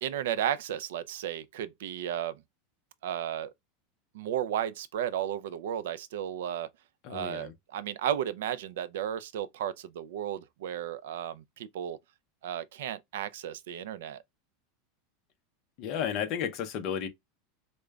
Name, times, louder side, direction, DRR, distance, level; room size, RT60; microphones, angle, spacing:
voice 1, 0.0-2.4 3.0-3.5 4.1-6.7 7.1-12.0 12.4-14.2, right 10 dB, 80° right, 0.4 m, -34 dB
voice 2, 7.0-7.5 15.8-17.1, left 8 dB, 35° left, 0.6 m, -33 dB
4.9 x 2.1 x 2.3 m
supercardioid pair, 180°, 0 cm